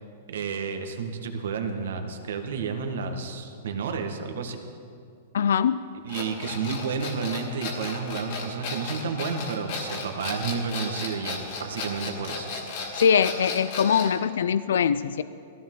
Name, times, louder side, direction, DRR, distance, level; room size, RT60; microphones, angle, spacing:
voice 1, 0.3-4.6 6.0-12.5, right 5 dB, 75° right, 5 dB, 1.6 m, -31 dB
voice 2, 5.3-5.8 13.0-15.2, left 7 dB, 90° left, 15 dB, 0.4 m, -22 dB
sound 1, 6.1-14.2, left 4 dB, 40° left, 2.6 m, -34 dB
18.0 x 15.0 x 3.9 m, 2.4 s
supercardioid pair, 175°, 0 cm